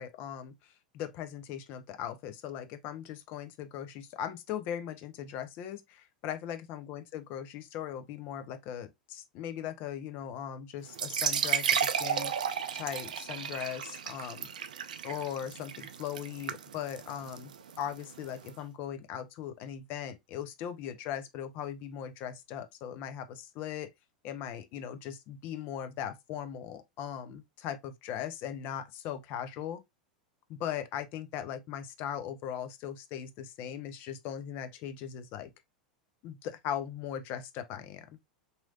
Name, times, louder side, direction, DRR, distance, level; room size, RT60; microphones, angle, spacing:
voice 1, 0.0-12.3 12.7-14.5 15.0-23.9 24.2-29.8 30.5-35.5 36.2-38.2, left 9 dB, 45° left, 0.5 m, -39 dB
sound 1, 10.9-18.5, right 8 dB, 75° right, 0.3 m, -33 dB
3.0 x 2.7 x 2.3 m
figure-of-eight pair, 85°, 4 cm